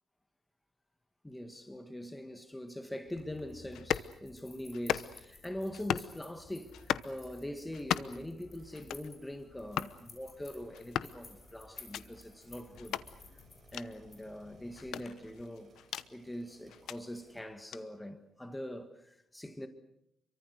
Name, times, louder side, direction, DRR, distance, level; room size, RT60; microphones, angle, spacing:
voice 1, 1.2-13.0 13.7-15.7 16.1-19.7, left 1 dB, 5° left, 1.7 m, -43 dB
sound 1, 3.1-15.1, left 3 dB, 30° left, 7.1 m, -55 dB
sound 2, 3.7-4.1 4.7-5.3 5.7-6.1 6.7-7.1 7.7-8.3 8.7-9.1 9.7-10.0 10.7-11.2 11.7-12.0 12.8-13.1 13.7-13.9 14.8-16.1 16.7-17.0 17.7-17.8, left 10 dB, 75° left, 0.9 m, -36 dB
sound 3, 6.7-7.5 7.8-7.9 8.5-17.4, right 4 dB, 35° right, 7.5 m, -66 dB
30.0 x 24.0 x 6.5 m
cardioid pair, 145°, 0 cm